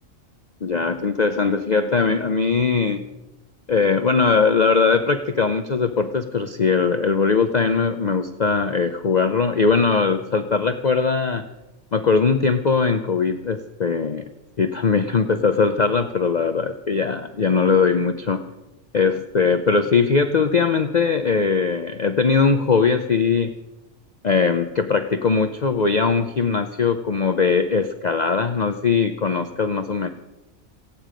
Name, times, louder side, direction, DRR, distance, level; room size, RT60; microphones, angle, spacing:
voice 1, 0.6-3.0 3.7-11.4 11.9-14.2 14.6-18.4 18.9-23.5 24.2-30.1, left 5 dB, 40° left, 8 dB, 0.7 m, -20 dB
28.0 x 9.4 x 5.1 m, 0.99 s
omnidirectional pair, 1.4 m